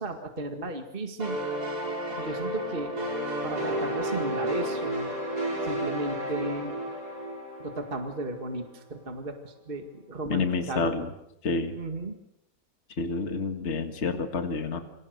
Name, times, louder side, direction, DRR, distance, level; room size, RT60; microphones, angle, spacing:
voice 1, 0.0-1.4 2.2-2.9 3.4-5.1 5.6-6.8 7.6-10.9 11.7-12.2, right 2 dB, 30° right, 4 dB, 2.2 m, -35 dB
sound 1, 1.2-8.7, right 1 dB, 60° right, 5.8 m, -32 dB
voice 2, 10.3-11.1 11.4-11.8 13.0-14.8, left 4 dB, 40° left, 6 dB, 2.0 m, -29 dB
28.5 x 26.5 x 6.7 m, 0.84 s
omnidirectional pair, 1.9 m